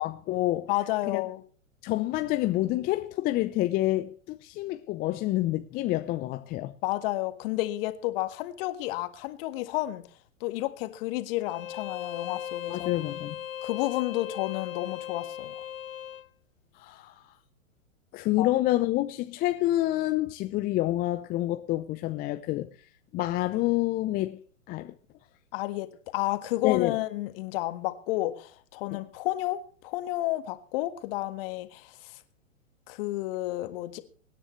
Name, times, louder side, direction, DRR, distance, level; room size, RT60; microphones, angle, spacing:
voice 1, 0.0-0.7 1.1-1.2 1.8-6.7 12.7-13.4 16.7-17.2 18.1-22.7 23.1-24.9 26.6-27.0 28.9-29.0, left 16 dB, 20° left, 0.6 m, -28 dB
voice 2, 0.7-1.4 6.8-10.0 10.4-12.9 13.6-15.6 18.4-18.5 25.5-25.9 26.1-32.2 32.9-34.0, left 17 dB, 45° left, 1.7 m, -31 dB
Bowed string instrument, 11.4-16.3, left 10 dB, 75° left, 0.8 m, -38 dB
24.0 x 9.9 x 3.2 m
hypercardioid pair, 115°, 40 cm